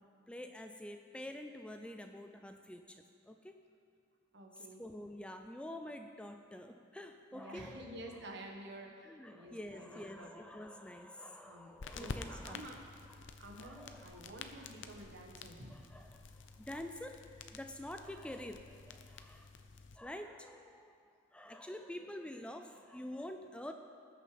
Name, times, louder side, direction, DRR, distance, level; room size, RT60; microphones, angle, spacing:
voice 1, 0.0-3.6 4.6-8.0 9.0-12.6 13.1-13.2 13.6-14.7 15.7-19.5 19.9-23.7, left 1 dB, 5° left, 6 dB, 0.4 m, -48 dB
voice 2, 4.3-4.8 7.3-10.3 11.4-12.8 13.4-15.8, right 1 dB, 60° right, 1 dB, 1.6 m, -50 dB
sound 1, 11.8-20.0, left 4 dB, 65° left, 0.7 m, -50 dB
19.5 x 6.6 x 5.2 m, 2.4 s
head